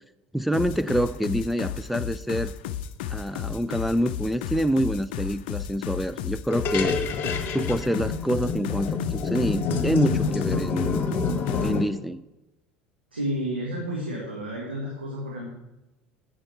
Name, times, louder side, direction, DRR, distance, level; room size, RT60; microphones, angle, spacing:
voice 1, 0.3-2.5 3.1-7.1 7.5-11.0 11.6-12.2, equal, ahead, 12 dB, 0.3 m, -26 dB
sound 1, 0.5-11.8, left 10 dB, 60° left, 0.5 m, -33 dB
sound 2, 6.5-11.8, left 4 dB, 40° left, 1.2 m, -27 dB
voice 2, 13.1-15.5, equal, 85° right, -3 dB, 1.8 m, -31 dB
10.5 x 7.5 x 4.4 m, 0.97 s
figure-of-eight pair, 70°, 6 cm